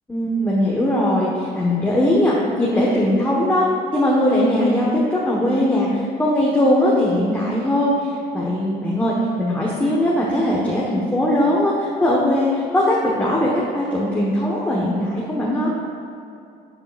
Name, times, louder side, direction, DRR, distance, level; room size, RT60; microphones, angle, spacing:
voice 1, 0.1-3.6 3.9-13.5 13.7-15.7, left 1 dB, 10° left, -5 dB, 1.3 m, -20 dB
11.5 x 7.8 x 2.5 m, 2.6 s
cardioid pair, 110°, 17 cm